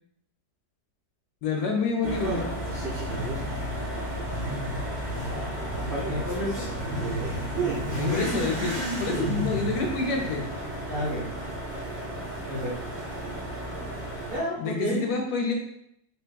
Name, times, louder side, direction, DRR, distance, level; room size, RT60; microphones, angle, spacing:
voice 1, 1.4-2.5 6.9-7.0 7.9-10.4 14.6-15.5, left 4 dB, 75° left, 1 dB, 1.0 m, -28 dB
sound 1, 2.0-14.4, right 1 dB, 10° right, 1.1 m, -33 dB
Motorcycle / Accelerating revving vroom, 2.6-11.5, equal, 85° right, 0.4 m, -35 dB
voice 2, 6.1-6.7 10.9-11.3 12.5-12.7 14.3-15.1, equal, 50° right, -7 dB, 0.7 m, -30 dB
3.3 x 2.9 x 2.2 m, 0.73 s
omnidirectional pair, 1.8 m